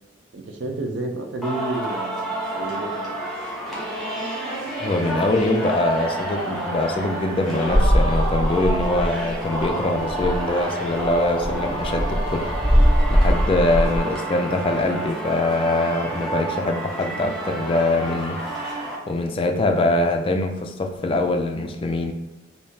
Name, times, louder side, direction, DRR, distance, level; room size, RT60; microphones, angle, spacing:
voice 1, 0.3-3.1, right 2 dB, 70° right, 3 dB, 0.5 m, -30 dB
Singing, 1.4-18.9, right 1 dB, ahead, 0.8 m, -29 dB
voice 2, 4.8-18.8 19.1-22.1, left 2 dB, 30° left, 5 dB, 0.3 m, -23 dB
sound 1, 7.7-9.3 9.6-9.7 10.0-10.5 11.0-14.0, equal, 35° right, 0.9 m, -20 dB
3.5 x 2.7 x 2.7 m, 1.1 s
head